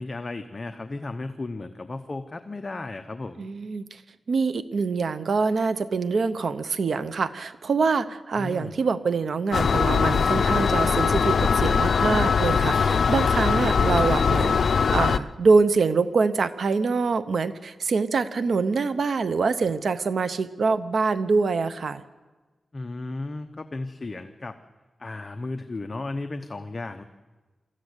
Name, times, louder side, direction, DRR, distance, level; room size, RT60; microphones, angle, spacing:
voice 1, 0.0-3.5 8.4-8.8 13.6-13.7 22.7-24.6 25.0-27.0, left 2 dB, 35° left, 6 dB, 0.9 m, -34 dB
voice 2, 3.4-4.0 4.3-22.0, right 4 dB, 70° right, 12 dB, 0.7 m, -25 dB
sound 1, 9.5-15.2, left 6 dB, 70° left, 0.6 m, -21 dB
22.0 x 14.5 x 8.1 m, 1.2 s
wide cardioid pair, 110°, 0 cm